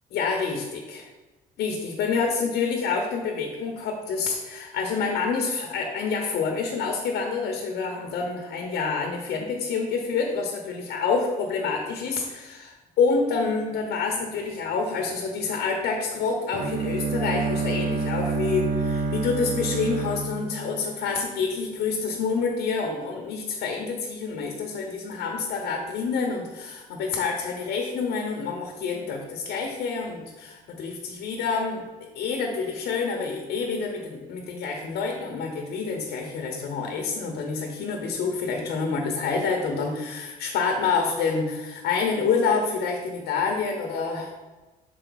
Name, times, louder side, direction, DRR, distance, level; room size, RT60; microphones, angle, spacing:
voice 1, 0.1-1.1 1.6-31.8 32.1-44.3, left 5 dB, 70° left, 2 dB, 0.9 m, -27 dB
Bowed string instrument, 16.5-21.5, right 4 dB, 50° right, 0.6 m, -28 dB
6.4 x 4.6 x 4.0 m, 1.2 s
cardioid pair, 110°, 17 cm